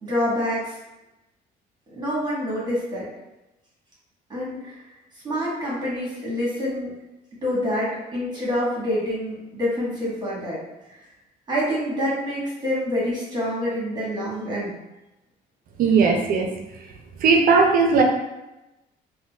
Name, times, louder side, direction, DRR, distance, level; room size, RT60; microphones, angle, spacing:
voice 1, 0.0-0.8 1.9-3.1 4.3-4.8 5.2-6.9 7.4-10.6 11.5-14.7, left 1 dB, 25° right, -6 dB, 1.2 m, -26 dB
voice 2, 15.8-16.5 17.2-18.0, right 4 dB, 60° right, 3 dB, 0.5 m, -17 dB
3.8 x 2.1 x 2.3 m, 0.96 s
cardioid pair, 110°, 17 cm